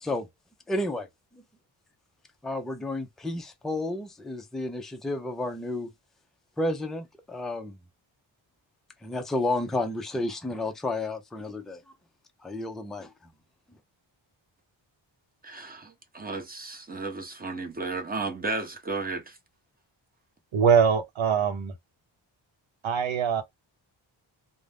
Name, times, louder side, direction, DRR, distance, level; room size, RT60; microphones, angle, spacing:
voice 1, 0.7-1.1 1.3-1.4 2.4-5.9 6.6-7.8 9.0-11.8 12.4-13.1, left 2 dB, ahead, 0.4 m, -31 dB
voice 2, 15.4-19.4, right 3 dB, 20° right, 0.8 m, -34 dB
voice 3, 20.5-21.7 22.8-23.4, right 7 dB, 75° right, 0.8 m, -22 dB
2.5 x 2.2 x 3.3 m
wide cardioid pair, 100°, 48 cm